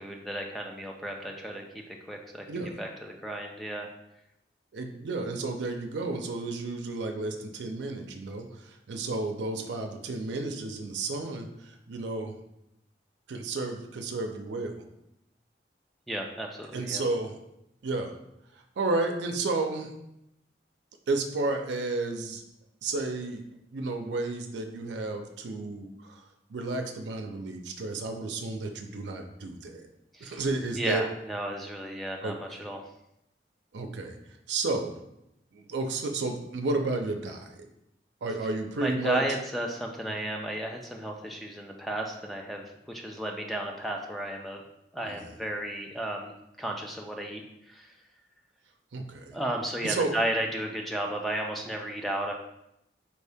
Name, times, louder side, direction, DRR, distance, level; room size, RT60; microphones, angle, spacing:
voice 1, 0.0-1.6 2.1-2.5 2.8-3.9 16.1-17.0 30.1-30.4 30.7-32.8 38.8-44.6 44.9-47.4 47.7-47.9 49.3-52.3, right 1 dB, ahead, 1 dB, 0.3 m, -33 dB
voice 2, 2.5-2.8 4.7-12.3 13.3-14.8 16.7-17.3 17.8-18.1 18.5-19.9 21.1-22.4 22.8-23.4 23.7-26.2 26.5-29.9 30.2-31.0 32.2-32.6 33.7-34.2 34.5-35.0 35.5-37.6 38.2-39.2 45.1-45.3 48.9-49.3 49.8-50.1, right 3 dB, 80° right, 4 dB, 0.4 m, -32 dB
4.4 x 2.7 x 3.4 m, 0.83 s
head